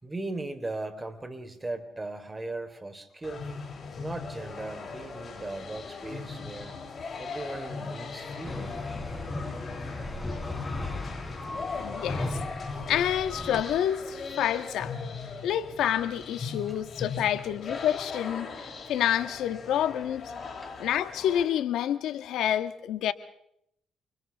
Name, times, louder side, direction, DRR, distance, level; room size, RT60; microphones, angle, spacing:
voice 1, 0.0-3.5 4.0-6.8 7.2-8.7 20.6-20.7, right 2 dB, 20° right, 4.0 m, -38 dB
sound 1, 3.2-21.4, left 4 dB, 40° left, 7.4 m, -39 dB
sound 2, 8.4-13.6, left 2 dB, 10° left, 5.6 m, -36 dB
voice 2, 11.7-12.4 12.9-14.9 15.4-18.5 18.9-20.3 20.8-23.1, left 10 dB, 85° left, 1.4 m, -28 dB
29.5 x 29.0 x 3.6 m
cardioid pair, 90°, 0 cm